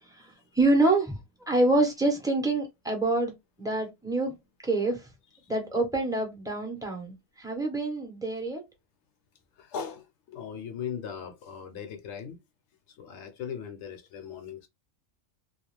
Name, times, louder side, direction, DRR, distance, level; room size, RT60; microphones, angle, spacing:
voice 1, 0.0-1.2 1.5-4.3 4.6-5.1 5.5-8.7, right 2 dB, 5° right, 0.5 m, -26 dB
voice 2, 9.6-12.4 12.9-14.7, left 7 dB, 65° left, 0.8 m, -39 dB
2.3 x 2.3 x 3.1 m
omnidirectional pair, 1.4 m